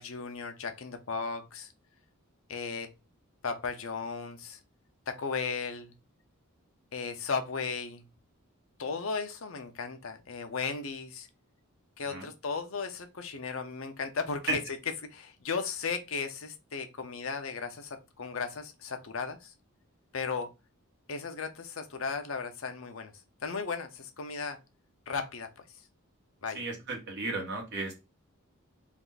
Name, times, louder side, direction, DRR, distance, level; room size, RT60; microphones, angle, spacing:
voice 1, 0.0-1.7 2.5-2.9 3.4-4.6 5.1-5.9 6.9-8.0 8.8-11.3 12.0-14.6 15.1-19.5 20.1-20.5 21.1-23.1 23.4-24.6 25.1-25.5 26.4-26.6, left 5 dB, 65° left, 0.8 m, -35 dB
voice 2, 26.5-28.0, right 2 dB, 50° right, 1.6 m, -34 dB
3.5 x 2.6 x 3.9 m
head